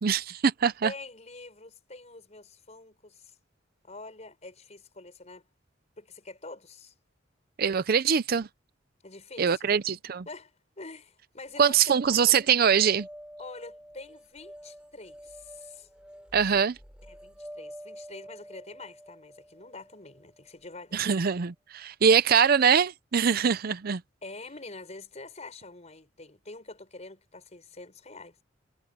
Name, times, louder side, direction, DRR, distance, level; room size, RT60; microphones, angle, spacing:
voice 1, 0.0-0.9 7.6-8.5 9.4-10.2 11.6-13.1 16.3-16.7 20.9-24.0, right 7 dB, 50° right, 0.5 m, -23 dB
voice 2, 0.8-3.4 3.8-5.4 6.0-6.9 9.0-10.0 10.3-12.4 13.4-15.9 17.1-21.1 24.2-28.4, left 3 dB, 35° left, 5.3 m, -45 dB
sound 1, 11.6-20.7, equal, 5° right, 4.2 m, -49 dB
head